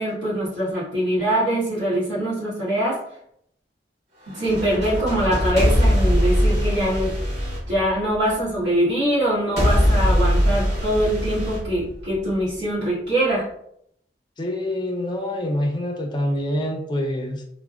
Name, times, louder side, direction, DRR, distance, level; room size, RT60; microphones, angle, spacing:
voice 1, 0.0-3.0 4.3-7.1 7.7-13.5, right 1 dB, 70° right, -10 dB, 1.4 m, -23 dB
sound 1, 4.3-8.4 9.6-12.4, equal, 40° right, 1.5 m, -21 dB
voice 2, 14.4-17.4, left 1 dB, 25° left, 1 dB, 0.4 m, -26 dB
3.3 x 2.1 x 2.4 m, 0.72 s
head